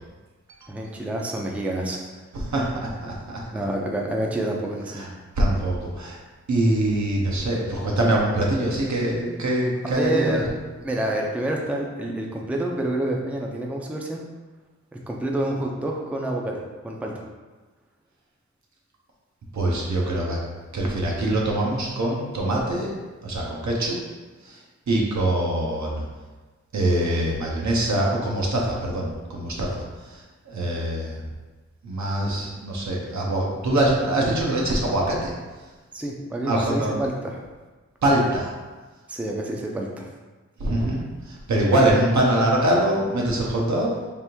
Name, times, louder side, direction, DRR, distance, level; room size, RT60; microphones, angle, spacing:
voice 1, 0.7-2.1 3.5-5.1 9.8-10.5 10.8-14.2 14.9-17.2 35.9-37.4 39.1-40.1, right 1 dB, 5° right, 0 dB, 0.4 m, -28 dB
voice 2, 2.3-3.6 4.9-5.1 5.4-6.2 6.5-10.4 19.5-20.4 20.7-22.9 23.2-24.0 24.4-24.6 24.9-26.0 26.7-31.2 31.8-35.4 36.4-37.0 38.0-38.5 40.6-44.1, right 1 dB, 70° right, -2 dB, 0.9 m, -24 dB
3.5 x 2.5 x 4.3 m, 1.3 s
wide cardioid pair, 100°, 29 cm